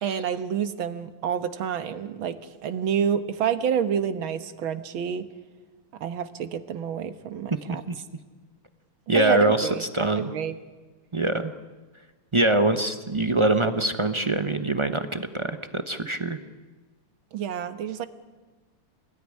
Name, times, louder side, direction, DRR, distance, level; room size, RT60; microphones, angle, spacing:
voice 1, 0.0-2.4 2.6-5.3 6.0-7.8 9.1-9.8 10.2-10.6 17.3-18.1, right 8 dB, 70° right, 10 dB, 2.0 m, -28 dB
voice 2, 9.1-10.3 11.1-11.5 12.3-16.4, right 2 dB, 40° right, 8 dB, 0.4 m, -24 dB
27.0 x 19.5 x 10.0 m, 1.3 s
omnidirectional pair, 2.4 m